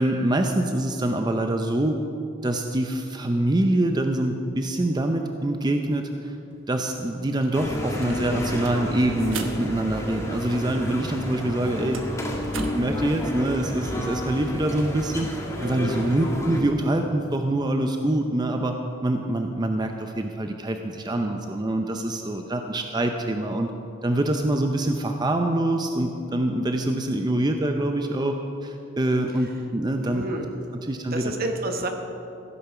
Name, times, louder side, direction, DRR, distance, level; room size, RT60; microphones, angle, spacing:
voice 1, 0.0-2.0 2.4-6.4 6.7-12.2 12.7-15.3 15.6-18.8 19.0-23.7 24.0-28.4 28.6-30.4 30.8-31.3, right 1 dB, 20° right, 5 dB, 0.5 m, -25 dB
sound 1, 6.5-6.6 6.9-10.8 11.1-13.0, right 4 dB, 80° right, 1.0 m, -40 dB
sound 2, 7.5-16.6, equal, 15° left, 1.8 m, -31 dB
voice 2, 15.6-16.2 29.4-29.5 30.0-30.5 31.1-31.9, right 2 dB, 50° right, 5 dB, 1.2 m, -30 dB
15.5 x 8.6 x 5.9 m, 2.7 s
head